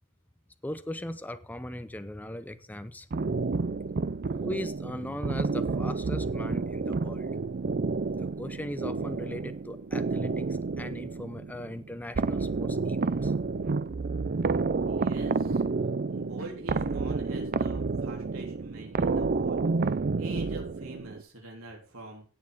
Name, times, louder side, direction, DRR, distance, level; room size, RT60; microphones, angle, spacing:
voice 1, 0.6-3.1 4.4-7.3 8.2-10.5 10.8-13.3, left 1 dB, 10° left, 10 dB, 0.7 m, -39 dB
sound 1, 3.1-21.2, right 4 dB, 45° right, 0.5 m, -30 dB
voice 2, 14.9-19.9 20.2-22.2, right 2 dB, 80° right, 0 dB, 3.4 m, -45 dB
17.0 x 6.6 x 3.9 m, 0.37 s
head